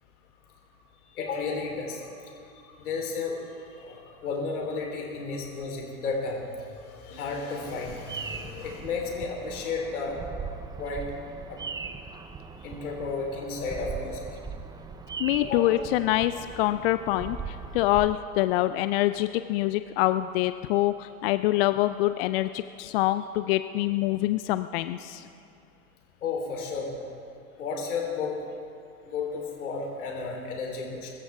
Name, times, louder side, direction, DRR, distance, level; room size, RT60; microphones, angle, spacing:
voice 1, 1.1-2.1 2.5-10.2 10.8-11.0 11.5-11.6 12.6-14.3 15.4-15.8 26.2-26.9 27.6-28.3 29.0-31.1, left 4 dB, 70° left, 0 dB, 3.9 m, -33 dB
Bird vocalization bird call bird song, 7.6-18.1, right 5 dB, 10° right, 0.5 m, -40 dB
voice 2, 15.2-25.3, left 15 dB, 45° left, 12 dB, 0.4 m, -25 dB
23.0 x 14.0 x 3.6 m, 2.5 s
figure-of-eight pair, 90°, 45 cm